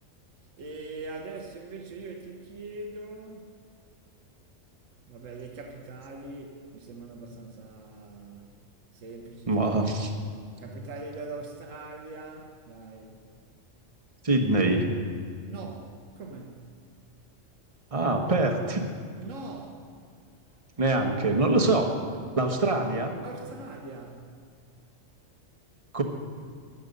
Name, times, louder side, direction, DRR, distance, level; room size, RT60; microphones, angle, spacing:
voice 1, 0.6-3.6 5.1-8.6 8.9-9.8 10.6-13.3 15.5-16.8 19.2-19.9 20.5-20.6 23.2-24.4, right 3 dB, 80° right, 1.5 m, -42 dB
voice 2, 9.5-10.1 14.2-14.9 17.9-18.8 20.8-21.9 22.4-23.2 25.9-26.0, right 2 dB, 25° right, 1.3 m, -24 dB
15.5 x 11.0 x 5.4 m
omnidirectional pair, 1.3 m